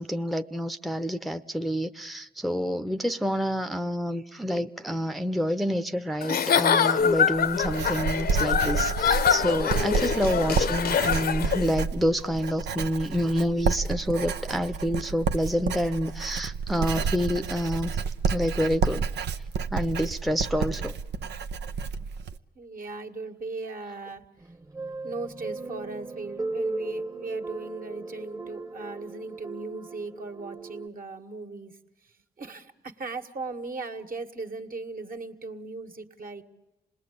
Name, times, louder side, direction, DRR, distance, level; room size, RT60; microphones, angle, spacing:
voice 1, 0.0-17.9 18.3-19.1 19.7-21.0, equal, ahead, 9 dB, 0.8 m, -28 dB
Giggle / Chuckle chortle, 6.2-11.7, left 7 dB, 65° left, 0.8 m, -24 dB
Writing, 7.0-22.4, right 5 dB, 85° right, 0.8 m, -30 dB
voice 2, 22.6-24.2 25.0-31.7 32.4-36.4, right 3 dB, 55° right, 4 dB, 1.9 m, -38 dB
sound 1, 24.4-30.9, right 2 dB, 20° right, 1.1 m, -37 dB
26.5 x 20.0 x 8.6 m, 1.0 s
cardioid pair, 60°, 17 cm